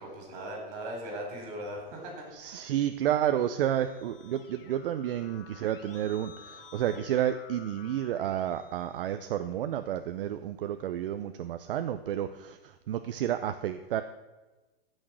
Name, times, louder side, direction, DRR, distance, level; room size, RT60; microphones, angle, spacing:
voice 1, 0.0-2.1 2.4-2.7, right 1 dB, 35° right, 1 dB, 4.5 m, -39 dB
voice 2, 2.3-14.0, right 11 dB, 65° right, 9 dB, 0.7 m, -31 dB
Keyboard (musical), 3.1-9.7, left 7 dB, 65° left, 1.9 m, -53 dB
15.0 x 6.5 x 6.4 m, 1.2 s
supercardioid pair, 170°, 30 cm